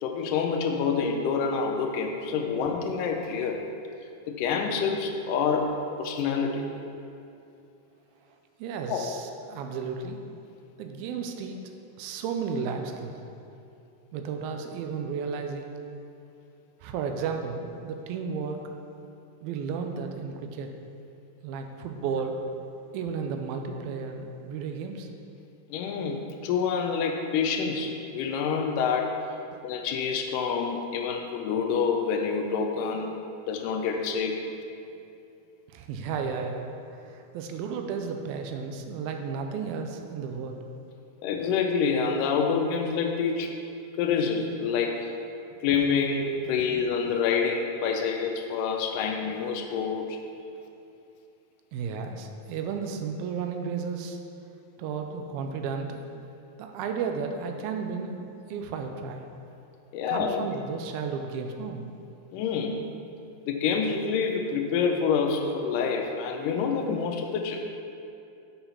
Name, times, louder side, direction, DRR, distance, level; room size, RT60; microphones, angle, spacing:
voice 1, 0.0-3.6 4.3-6.7 8.9-9.1 25.7-29.2 29.6-34.4 41.2-43.6 44.0-45.1 45.6-50.2 59.9-60.5 62.3-62.8 63.5-67.7, left 5 dB, 85° left, 3 dB, 1.8 m, -27 dB
voice 2, 8.6-10.2 10.8-11.6 12.0-13.1 14.1-15.7 16.8-18.6 19.4-20.7 21.4-22.4 22.9-25.1 35.7-36.7 37.0-40.6 51.7-54.2 54.8-56.0 56.6-58.2 58.5-59.3 60.1-61.9, right 5 dB, 85° right, 5 dB, 2.4 m, -33 dB
6.9 x 5.5 x 5.6 m, 2.7 s
omnidirectional pair, 4.4 m